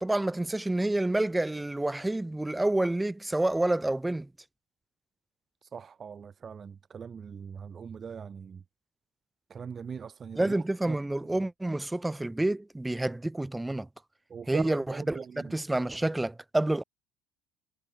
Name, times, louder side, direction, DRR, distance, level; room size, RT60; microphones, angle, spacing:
voice 1, 0.0-4.3 10.4-13.9 14.5-16.8, right 1 dB, 10° right, 1.0 m, -28 dB
voice 2, 5.6-8.6 9.5-10.5 10.9-11.0 11.2-11.3 14.3-15.5, right 6 dB, 35° right, 0.8 m, -40 dB
hypercardioid pair, 75°, 0 cm